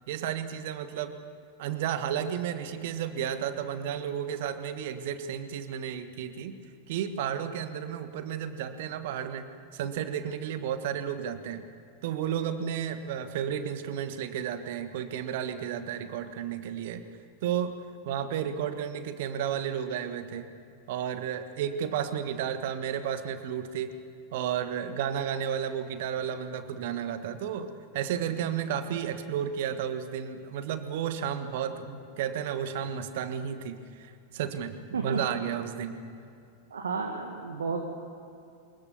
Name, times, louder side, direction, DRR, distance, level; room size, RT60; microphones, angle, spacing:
voice 1, 0.1-1.2 1.6-6.6 6.9-11.7 12.0-17.0 17.4-17.7 18.0-20.5 20.9-23.9 24.3-36.0, right 9 dB, 50° right, 10 dB, 1.5 m, -32 dB
voice 2, 36.7-37.8, right 5 dB, 70° right, 3 dB, 1.8 m, -32 dB
24.0 x 21.5 x 7.1 m, 2.6 s
figure-of-eight pair, 90°, 0 cm